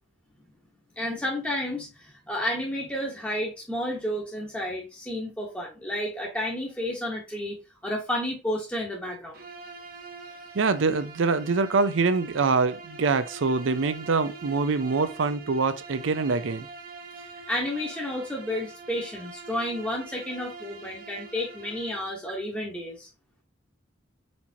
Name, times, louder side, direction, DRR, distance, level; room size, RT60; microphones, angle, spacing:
voice 1, 1.0-7.6 7.8-9.4 17.5-23.1, left 1 dB, 5° left, 1.0 m, -31 dB
Bowed string instrument, 9.3-22.1, right 4 dB, 50° right, 1.0 m, -44 dB
voice 2, 10.5-16.7, right 4 dB, 85° right, 0.5 m, -24 dB
4.4 x 4.3 x 2.8 m
head